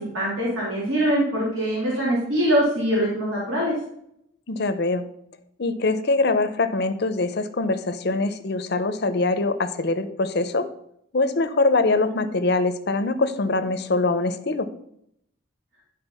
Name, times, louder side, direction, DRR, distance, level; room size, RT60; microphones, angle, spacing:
voice 1, 0.1-3.7, equal, 75° right, -6 dB, 2.8 m, -23 dB
voice 2, 4.5-5.1 5.6-10.7 11.1-14.7, left 3 dB, 50° left, 11 dB, 0.6 m, -23 dB
11.0 x 3.8 x 5.5 m, 0.73 s
head